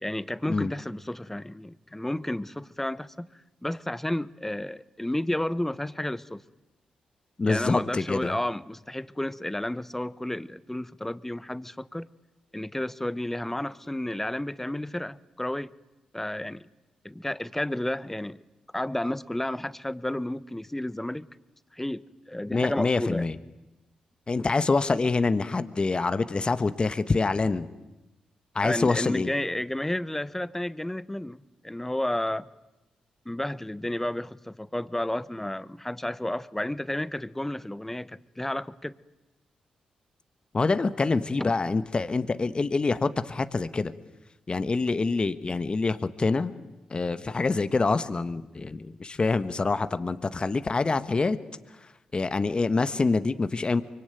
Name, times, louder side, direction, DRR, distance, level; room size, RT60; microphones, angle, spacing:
voice 1, 0.0-3.3 3.6-6.4 7.4-12.1 12.5-15.7 16.1-16.7 17.0-18.4 18.7-21.3 21.7-23.3 28.6-32.5 33.2-38.9 41.4-41.5, left 1 dB, 10° left, 1.1 m, -31 dB
voice 2, 7.4-8.3 22.5-23.3 24.3-27.7 28.5-29.3 40.5-43.9 44.5-46.5 46.9-51.4 52.1-53.8, left 3 dB, 40° left, 1.4 m, -26 dB
24.5 x 23.5 x 9.3 m
supercardioid pair, 45°, 3 cm